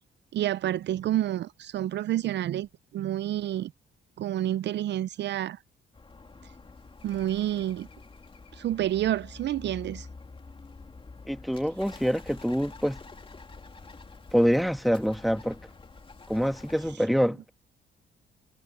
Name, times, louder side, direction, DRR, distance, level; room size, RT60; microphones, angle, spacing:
voice 1, 0.3-3.7 4.2-5.6 7.0-7.9 8.5-10.1, right 12 dB, 60° right, 0.5 m, -29 dB
Bird, 5.9-17.0, left 3 dB, 25° left, 2.9 m, -47 dB
voice 2, 11.3-13.0 14.3-15.6 16.3-17.4, equal, ahead, 1.5 m, -25 dB
cardioid pair, 90°, 20 cm